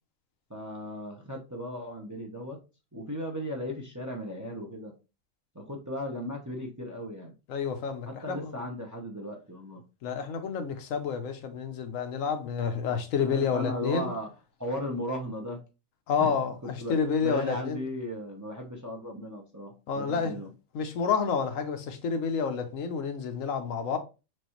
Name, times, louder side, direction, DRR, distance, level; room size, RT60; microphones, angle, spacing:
voice 1, 0.5-2.6 2.9-4.9 5.5-7.3 8.1-9.8 13.2-14.3 14.6-15.6 16.2-16.3 16.8-16.9 17.2-20.5, equal, 20° right, 0.7 m, -36 dB
voice 2, 7.5-8.6 10.0-14.1 16.1-17.8 19.9-20.4 20.7-24.0, left 6 dB, 80° left, 1.1 m, -29 dB
6.2 x 2.6 x 3.0 m
omnidirectional pair, 1.4 m